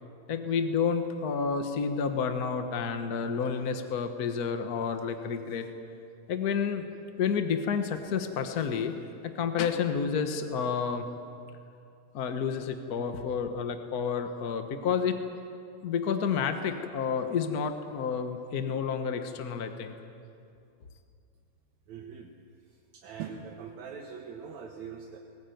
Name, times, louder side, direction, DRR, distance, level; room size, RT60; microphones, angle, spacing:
voice 1, 0.3-5.7 6.3-6.8 7.2-9.0 9.3-11.1 12.1-15.2 15.8-19.9, left 6 dB, 70° left, 7 dB, 0.9 m, -30 dB
voice 2, 21.9-22.3 22.7-25.2, right 7 dB, 70° right, 2 dB, 2.5 m, -42 dB
21.0 x 18.5 x 9.2 m, 2.5 s
omnidirectional pair, 3.4 m